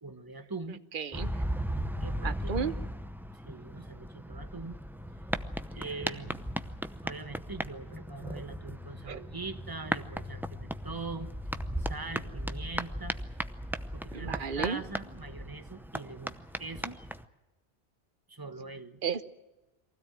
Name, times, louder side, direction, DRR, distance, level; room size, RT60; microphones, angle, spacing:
voice 1, 0.0-0.8 2.0-2.7 3.3-4.8 5.7-6.5 7.0-11.3 11.9-13.2 13.9-17.0 18.3-19.0, right 3 dB, 20° right, 9 dB, 1.3 m, -42 dB
voice 2, 0.9-1.4 2.2-2.8 9.1-9.2 14.1-14.8 19.0-19.2, right 6 dB, 50° right, 12 dB, 1.1 m, -33 dB
sound 1, 1.1-17.2, equal, ahead, 0.6 m, -37 dB
23.5 x 16.5 x 9.2 m, 1.1 s
omnidirectional pair, 1.2 m